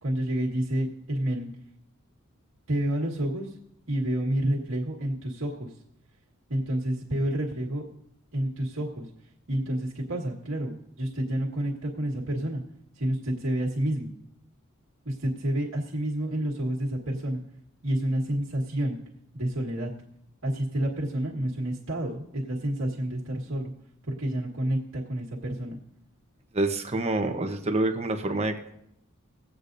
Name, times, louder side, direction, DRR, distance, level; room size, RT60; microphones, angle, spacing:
voice 1, 0.0-1.5 2.7-3.6 3.9-5.8 6.5-7.9 8.3-9.1 9.5-12.6 12.9-14.1 15.0-17.4 17.8-19.0 19.3-19.9 20.4-23.7 24.0-25.8, right 1 dB, 75° right, -3 dB, 1.8 m, -29 dB
voice 2, 26.5-28.7, right 2 dB, 30° right, 6 dB, 1.0 m, -27 dB
20.5 x 8.3 x 2.7 m, 0.75 s
head